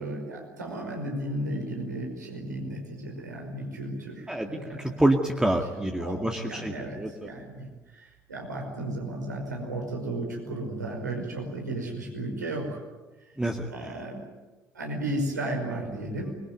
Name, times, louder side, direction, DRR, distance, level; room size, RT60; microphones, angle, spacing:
voice 1, 0.0-5.0 5.7-12.8 13.7-14.2 14.7-16.4, right 1 dB, 80° right, 1 dB, 5.4 m, -34 dB
voice 2, 5.0-7.1 13.4-13.7, right 1 dB, 10° right, 2 dB, 2.2 m, -26 dB
24.0 x 22.0 x 9.4 m, 1.2 s
figure-of-eight pair, 55°, 9 cm